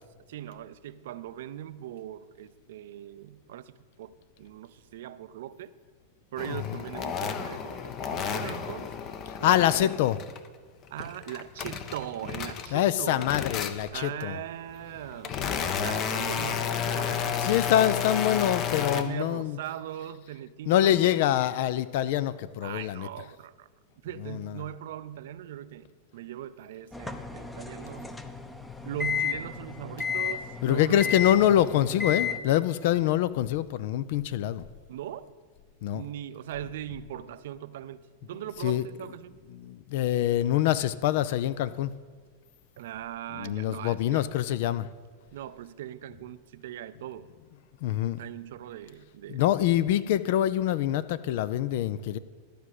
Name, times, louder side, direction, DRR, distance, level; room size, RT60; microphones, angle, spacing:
voice 1, 0.3-5.7 6.3-8.9 9.4-9.9 10.9-13.3 13.9-18.0 18.9-21.2 22.6-23.7 24.0-28.2 28.9-31.1 34.9-35.3 35.9-39.4 42.8-44.3 45.3-47.3 48.2-49.4, right 11 dB, 60° right, 15 dB, 0.4 m, -40 dB
sound 1, 6.4-10.5 10.8-12.9 13.2-14.1 14.7-19.0, left 7 dB, 40° left, 0.8 m, -32 dB
voice 2, 6.5-6.8 9.3-10.2 12.7-14.4 17.4-19.6 20.7-23.1 24.2-24.6 30.6-34.7 35.8-36.0 38.6-38.9 39.5-41.9 43.3-44.9 47.8-48.2 49.3-52.2, left 12 dB, 55° left, 15 dB, 0.4 m, -25 dB
sound 2, 26.9-32.4, left 6 dB, 10° left, 0.7 m, -33 dB
12.0 x 5.0 x 7.7 m, 1.5 s
figure-of-eight pair, 95°, 0 cm